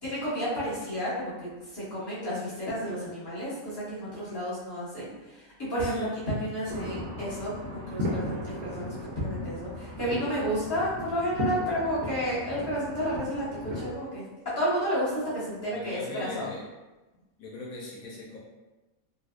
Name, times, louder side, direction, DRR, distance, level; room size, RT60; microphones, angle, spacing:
voice 1, 0.0-16.5, equal, 15° left, -11 dB, 1.4 m, -31 dB
sound 1, 6.7-14.0, equal, 65° right, 1.0 m, -36 dB
voice 2, 15.6-16.6 17.4-18.4, left 2 dB, 75° left, -4 dB, 1.1 m, -40 dB
4.0 x 2.5 x 2.4 m, 1.1 s
omnidirectional pair, 1.5 m